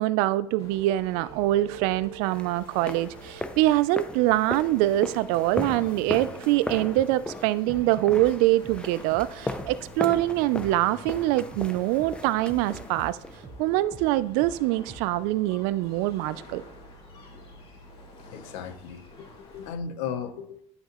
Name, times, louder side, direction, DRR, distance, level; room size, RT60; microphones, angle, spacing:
voice 1, 0.0-13.2 13.6-16.6, right 16 dB, 80° right, 0.4 m, -24 dB
sound 1, 0.6-19.7, left 1 dB, 40° left, 2.0 m, -49 dB
sound 2, 2.3-13.4, left 2 dB, 5° left, 0.4 m, -37 dB
sound 3, 7.7-15.3, right 3 dB, 25° right, 0.9 m, -47 dB
voice 2, 18.2-20.6, left 7 dB, 85° left, 0.8 m, -36 dB
10.5 x 5.6 x 3.0 m
cardioid pair, 125°, 15 cm